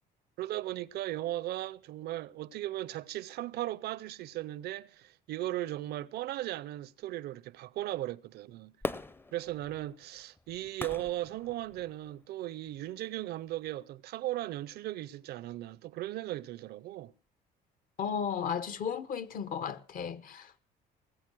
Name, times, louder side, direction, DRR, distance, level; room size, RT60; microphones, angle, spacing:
voice 1, 0.4-8.7 9.3-17.1, right 15 dB, 75° right, 0.6 m, -37 dB
Fireworks, 8.8-12.1 12.7-12.8, left 3 dB, 10° left, 0.6 m, -41 dB
voice 2, 18.0-20.6, left 7 dB, 55° left, 1.0 m, -35 dB
19.0 x 8.0 x 6.1 m
cardioid pair, 110°, 17 cm